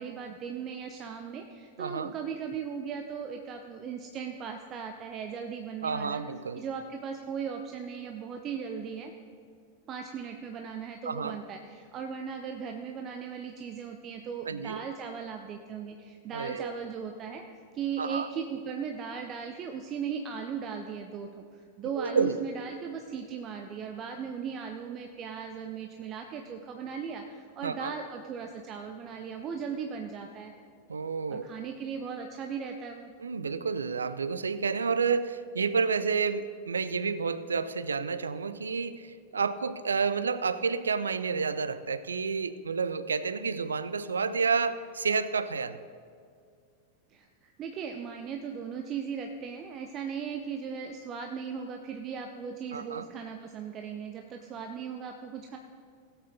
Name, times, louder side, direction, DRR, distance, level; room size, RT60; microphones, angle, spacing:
voice 1, 0.0-6.2 6.5-9.1 9.9-17.4 17.7-30.5 31.3-33.1 47.1-55.6, right 6 dB, 30° right, 5 dB, 0.7 m, -37 dB
voice 2, 1.8-2.1 5.8-6.6 11.1-11.4 14.5-14.8 16.3-16.7 18.0-18.3 22.0-22.4 27.6-28.0 30.9-31.5 33.2-45.8 52.7-53.1, right 5 dB, 70° right, 15 dB, 0.4 m, -30 dB
17.0 x 8.1 x 3.9 m, 2.2 s
figure-of-eight pair, 90°, 0 cm